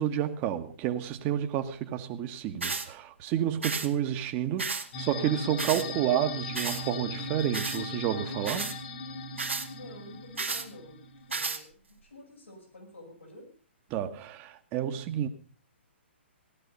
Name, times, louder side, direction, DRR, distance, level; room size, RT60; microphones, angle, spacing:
voice 1, 0.0-8.7 13.9-15.3, right 10 dB, 30° right, 1.4 m, -30 dB
sound 1, 2.6-2.9 3.6-3.9 4.6-4.9 5.6-5.8 6.6-6.8 7.5-7.8 8.4-8.8 9.4-9.7 10.4-10.7 11.3-11.6, right 4 dB, 80° right, 2.0 m, -32 dB
sound 2, 4.9-11.5, left 2 dB, 50° left, 2.6 m, -38 dB
voice 2, 9.7-11.0 11.3-13.5, left 1 dB, 85° left, 6.9 m, -49 dB
17.0 x 12.5 x 5.4 m
figure-of-eight pair, 125°, 7 cm